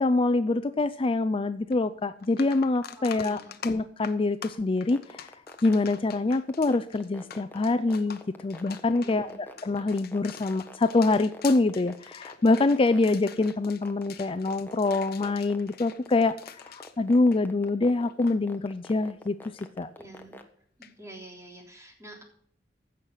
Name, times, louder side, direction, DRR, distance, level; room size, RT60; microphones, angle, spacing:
voice 1, 0.0-5.3 5.6-16.4 16.6-19.9, left 3 dB, 30° left, 12 dB, 0.4 m, -25 dB
sound 1, 1.7-1.8 2.2-17.8 18.1-18.4 20.8-20.9, left 8 dB, 55° left, 1.0 m, -45 dB
voice 2, 3.0-3.6 9.0-9.4 20.0-20.4 20.8-22.2, right 1 dB, 15° right, 1 dB, 3.5 m, -47 dB
sound 2, 4.8-20.4, left 1 dB, 10° left, 1.3 m, -45 dB
15.5 x 6.5 x 5.6 m, 0.62 s
head